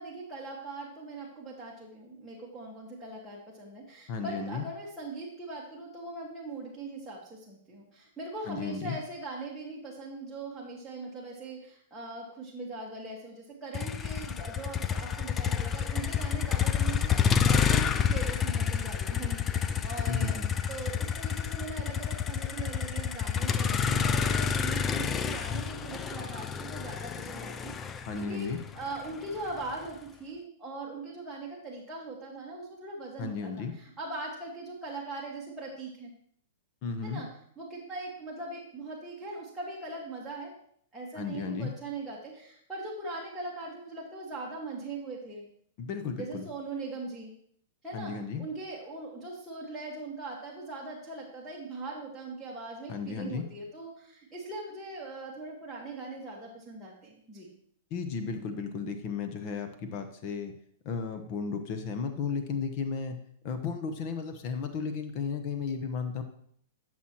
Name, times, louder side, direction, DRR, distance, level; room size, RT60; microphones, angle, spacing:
voice 1, 0.0-20.4 20.7-36.1 37.0-37.3 37.6-40.5 40.9-45.5 46.2-47.3 47.8-57.5, right 2 dB, 5° right, -7 dB, 1.7 m, -40 dB
voice 2, 4.1-4.7 8.5-9.0 20.1-20.5 28.1-28.6 33.2-33.7 36.8-37.2 41.1-41.7 45.8-46.5 47.9-48.4 52.9-53.4 57.9-60.5 60.8-63.2 63.4-66.2, left 5 dB, 45° left, 7 dB, 1.0 m, -34 dB
Motor vehicle (road), 13.7-29.9, left 7 dB, 20° left, 0.4 m, -29 dB
12.5 x 6.2 x 3.0 m, 0.64 s
hypercardioid pair, 140°, 0 cm